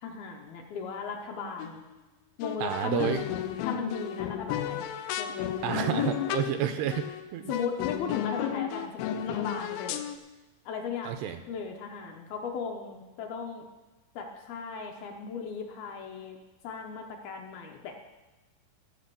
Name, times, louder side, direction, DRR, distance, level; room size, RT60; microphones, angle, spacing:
voice 1, 0.0-1.8 2.4-3.3 3.6-6.1 7.5-10.0 10.7-13.7 14.2-16.4 16.6-17.9, left 6 dB, 70° left, 2 dB, 2.4 m, -37 dB
sound 1, 1.6-2.0 2.4-6.6 6.9-7.2 7.5-10.2, left 10 dB, 90° left, 3.1 m, -33 dB
voice 2, 2.6-3.2 5.6-7.5 11.0-11.4, right 10 dB, 80° right, 8 dB, 2.5 m, -30 dB
15.5 x 6.4 x 6.9 m, 1.1 s
omnidirectional pair, 5.1 m